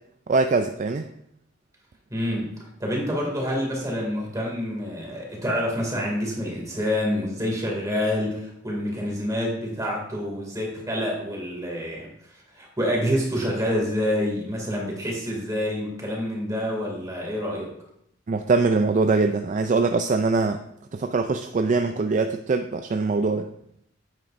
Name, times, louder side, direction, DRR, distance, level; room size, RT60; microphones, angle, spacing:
voice 1, 0.3-1.1 18.3-20.6 20.9-23.5, right 3 dB, 40° right, 7 dB, 0.4 m, -22 dB
voice 2, 2.1-17.7, equal, 20° right, -2 dB, 2.4 m, -27 dB
9.1 x 9.0 x 2.6 m, 0.73 s
head